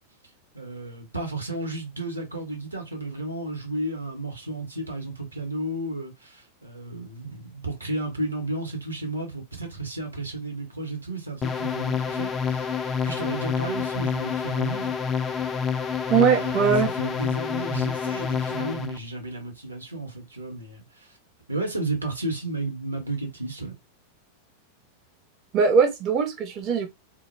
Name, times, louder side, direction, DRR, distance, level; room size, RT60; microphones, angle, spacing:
voice 1, 0.5-12.8 13.0-14.9 16.1-21.2 21.5-23.8, right 2 dB, 80° right, 0.8 m, -33 dB
sound 1, 11.4-19.0, left 6 dB, 25° left, 0.4 m, -28 dB
voice 2, 16.1-16.9 25.5-26.9, right 6 dB, 35° right, 0.5 m, -21 dB
2.1 x 2.1 x 3.1 m
figure-of-eight pair, 90°, 0 cm